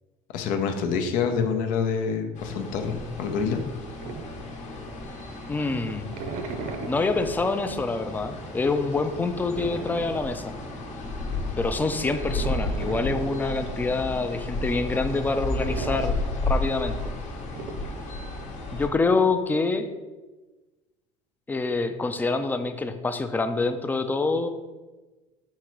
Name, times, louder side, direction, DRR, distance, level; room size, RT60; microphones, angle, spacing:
voice 1, 0.3-3.6, left 6 dB, 70° left, 5 dB, 0.6 m, -26 dB
sound 1, 2.3-18.9, left 2 dB, 50° left, 1.0 m, -33 dB
sound 2, 2.6-5.2 5.6-18.1, right 3 dB, 60° right, 0.6 m, -39 dB
voice 2, 5.5-6.1 6.9-10.5 11.6-16.2 16.5-16.9 18.7-19.9 21.5-24.5, left 3 dB, 10° left, 9 dB, 0.3 m, -26 dB
4.4 x 3.7 x 3.1 m, 1.2 s
supercardioid pair, 95°, 15 cm